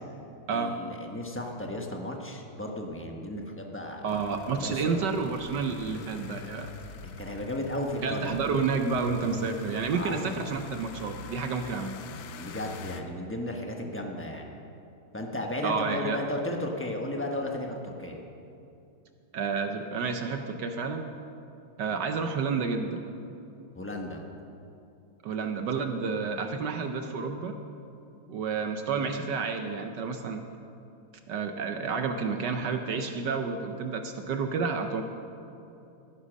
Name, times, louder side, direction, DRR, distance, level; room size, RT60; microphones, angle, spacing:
voice 1, 0.5-4.1 4.5-4.9 7.0-8.4 9.9-10.4 12.4-14.5 15.1-18.2 23.7-24.2, left 1 dB, 15° left, 1 dB, 0.5 m, -34 dB
voice 2, 4.0-6.7 8.0-12.0 15.6-16.2 19.3-21.1 21.8-23.0 25.2-27.5 28.3-30.4 31.3-35.0, right 5 dB, 65° right, 6 dB, 1.2 m, -30 dB
sound 1, 4.1-13.0, left 5 dB, 70° left, 1.5 m, -44 dB
15.0 x 10.0 x 6.3 m, 2.7 s
omnidirectional pair, 2.3 m